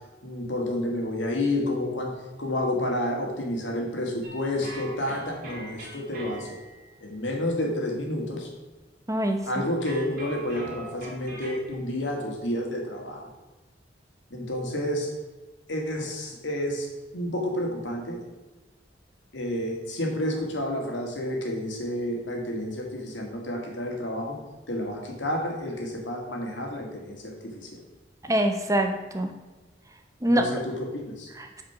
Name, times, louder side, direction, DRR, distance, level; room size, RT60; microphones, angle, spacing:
voice 1, 0.2-6.6 7.0-8.5 9.5-13.3 14.3-15.1 15.7-16.9 17.1-18.2 19.3-24.4 24.7-27.8 30.3-31.3, left 1 dB, 85° left, 1 dB, 2.1 m, -30 dB
sound 1, 4.2-7.0 9.8-11.7, right 2 dB, 50° right, 1.9 m, -42 dB
voice 2, 9.1-9.6 28.2-29.3 30.2-30.5 31.4-31.6, right 1 dB, 15° right, 5 dB, 0.8 m, -25 dB
8.9 x 4.9 x 5.9 m, 1.2 s
head